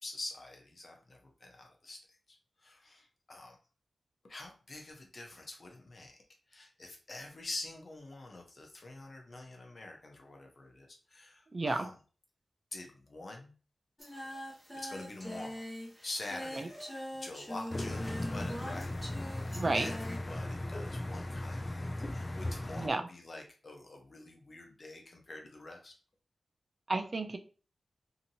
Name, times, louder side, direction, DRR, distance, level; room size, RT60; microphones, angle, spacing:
voice 1, 0.0-2.0 2.3-3.6 4.2-6.2 6.5-12.0 12.7-13.5 14.7-15.6 16.0-18.9 19.7-25.9, left 2 dB, 55° left, 2 dB, 0.8 m, -46 dB
voice 2, 11.5-11.9 19.5-19.9 22.8-23.0 26.9-27.4, right 3 dB, 50° right, 7 dB, 0.4 m, -31 dB
Singing, 14.0-20.2, equal, 5° left, 0.9 m, -43 dB
sound 1, 17.7-22.9, left 1 dB, 35° left, 0.3 m, -37 dB
2.8 x 2.6 x 2.7 m, 0.38 s
cardioid pair, 45°, 0 cm